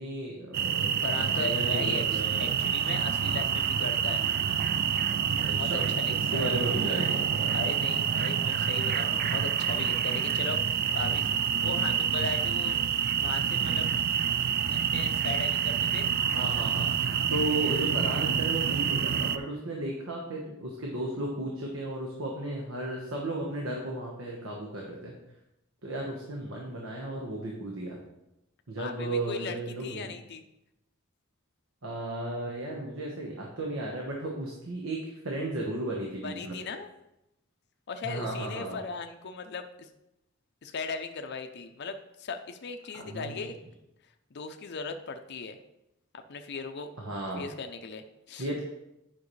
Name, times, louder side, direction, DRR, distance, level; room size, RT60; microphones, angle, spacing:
voice 1, 0.0-2.5 5.5-5.9 6.3-7.6 16.3-16.9 17.3-25.1 25.8-28.0 28.7-30.1 31.8-36.6 38.0-38.8 42.9-43.4 47.0-47.5 48.4-48.6, right 1 dB, 75° right, -1 dB, 1.2 m, -34 dB
sound 1, 0.5-19.4, right 8 dB, 45° right, 0.3 m, -27 dB
voice 2, 1.0-4.2 5.4-6.5 7.5-12.8 13.2-13.9 14.7-16.1 28.8-29.6 29.8-30.4 36.2-36.9 37.9-39.9 40.6-43.5 44.3-45.6 46.1-46.9 47.4-48.5, left 4 dB, 55° left, 6 dB, 0.5 m, -38 dB
9.4 x 5.8 x 3.2 m, 0.88 s
head